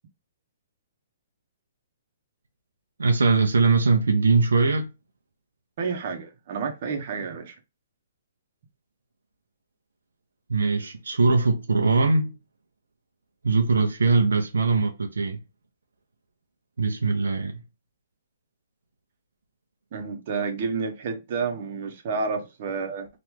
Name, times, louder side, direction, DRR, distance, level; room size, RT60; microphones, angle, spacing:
voice 1, 3.0-4.9 10.5-12.3 13.4-15.4 16.8-17.5, right 4 dB, 85° right, 0.6 m, -21 dB
voice 2, 5.8-7.6 19.9-23.1, right 5 dB, 50° right, 0.9 m, -30 dB
3.0 x 2.5 x 3.4 m
hypercardioid pair, 135°, 0 cm